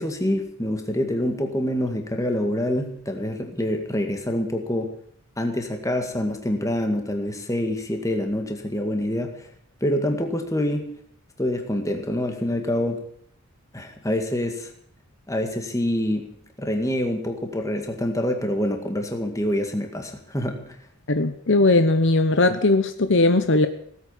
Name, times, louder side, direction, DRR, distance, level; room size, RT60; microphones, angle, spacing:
voice 1, 0.0-4.9 5.4-9.5 9.8-10.9 11.4-13.0 13.7-14.7 15.3-20.8, left 1 dB, 15° left, 4 dB, 2.0 m, -26 dB
voice 2, 21.1-23.7, left 2 dB, 55° left, 9 dB, 1.0 m, -19 dB
18.5 x 8.4 x 9.1 m, 0.66 s
head